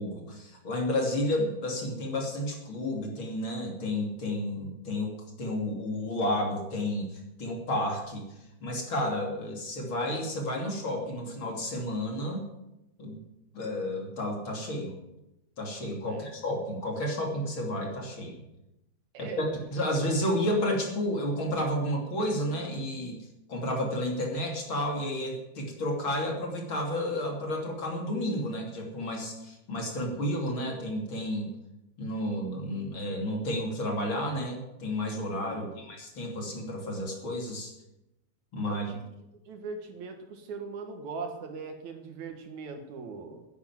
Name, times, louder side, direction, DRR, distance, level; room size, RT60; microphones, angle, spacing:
voice 1, 0.0-7.1 7.4-8.2 8.6-12.4 13.0-13.2 13.5-14.9 15.6-18.4 19.2-19.4 19.7-23.2 23.5-31.5 32.0-37.7 38.5-38.8, left 1 dB, 40° left, 1 dB, 3.4 m, -31 dB
voice 2, 19.1-19.9 35.5-35.9 38.6-39.0 39.5-43.5, right 4 dB, 70° right, 6 dB, 3.0 m, -40 dB
11.5 x 10.0 x 9.5 m, 0.92 s
omnidirectional pair, 3.4 m